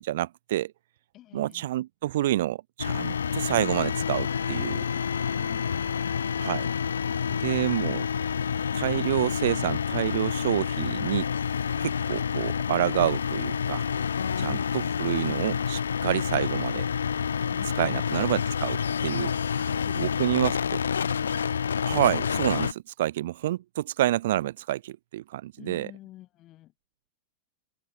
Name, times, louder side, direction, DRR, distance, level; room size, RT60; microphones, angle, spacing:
voice 1, 0.0-0.7 1.3-4.8 6.4-6.7 7.4-8.0 8.7-11.3 11.8-13.8 14.4-16.9 17.8-19.3 20.0-20.6 21.8-25.9, right 14 dB, 55° right, 0.8 m, -28 dB
voice 2, 1.1-1.7 25.6-26.7, left 15 dB, 35° left, 5.7 m, -49 dB
sound 1, 2.8-22.7, left 7 dB, 70° left, 1.4 m, -28 dB
open air
figure-of-eight pair, 90°, 0 cm